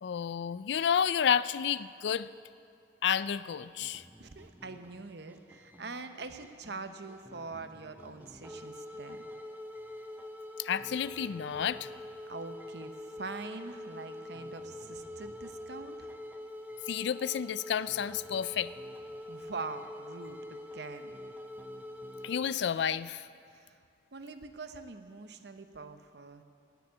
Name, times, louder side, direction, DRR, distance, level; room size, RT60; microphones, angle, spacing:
voice 1, 0.0-2.3 3.0-4.0 10.6-11.9 16.9-18.7 22.2-23.3, left 8 dB, 65° left, 16 dB, 0.3 m, -30 dB
sound 1, 3.8-22.4, left 1 dB, 10° right, 0.7 m, -45 dB
voice 2, 4.2-9.2 12.3-16.1 19.3-21.2 23.5-23.8 24.1-26.4, right 3 dB, 60° right, 8 dB, 0.9 m, -44 dB
18.5 x 7.1 x 8.7 m, 2.3 s
head